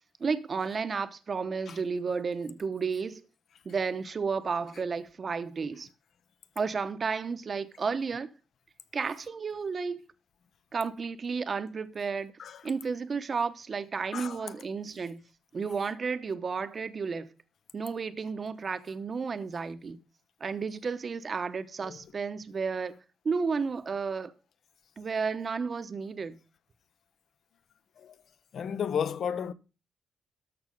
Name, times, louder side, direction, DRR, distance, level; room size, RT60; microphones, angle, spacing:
voice 1, 0.2-3.2 3.6-5.9 6.6-8.3 8.9-10.0 10.7-12.3 12.6-15.2 15.5-17.3 17.7-20.0 20.4-23.0 23.2-24.3 25.0-26.4, right 5 dB, 35° right, 0.9 m, -32 dB
voice 2, 14.1-14.5 21.8-22.0 28.0-28.2 28.5-29.5, left 8 dB, 60° left, 0.7 m, -33 dB
13.0 x 6.0 x 5.2 m
cardioid pair, 135°, 0 cm